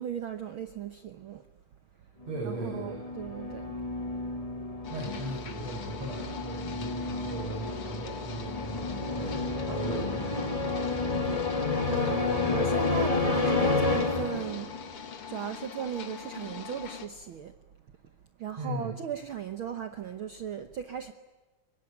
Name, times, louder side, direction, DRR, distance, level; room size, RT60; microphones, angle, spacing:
voice 1, 0.0-1.5 2.0-2.1 2.4-3.8 11.9-14.7 15.3-17.6 18.4-21.1, right 9 dB, 90° right, 9 dB, 1.1 m, -36 dB
sound 1, 2.2-14.9, left 3 dB, 20° left, 1.0 m, -31 dB
voice 2, 2.3-3.0 4.9-10.8 18.6-18.9, right 1 dB, 50° right, -1 dB, 6.6 m, -38 dB
sound 2, 4.8-17.1, left 7 dB, 45° left, 2.4 m, -43 dB
23.5 x 22.0 x 9.9 m, 1.2 s
omnidirectional pair, 3.9 m